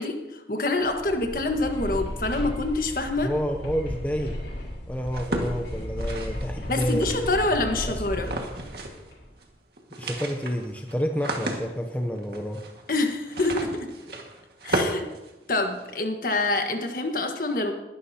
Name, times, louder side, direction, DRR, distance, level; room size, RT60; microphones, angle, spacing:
voice 1, 0.0-3.3 6.7-8.3 12.9-13.9 14.6-15.0 15.5-17.7, left 2 dB, 50° left, 4 dB, 1.5 m, -26 dB
sound 1, 0.8-9.3, equal, 85° left, 4.9 m, -35 dB
voice 2, 3.2-4.3 4.9-8.3 10.0-12.6, equal, 10° left, 3 dB, 0.7 m, -30 dB
sound 2, 5.1-7.6 8.2-9.1 9.4-9.5 9.8-15.9, right 2 dB, 60° right, 1.9 m, -33 dB
21.0 x 11.0 x 2.9 m, 1.0 s
head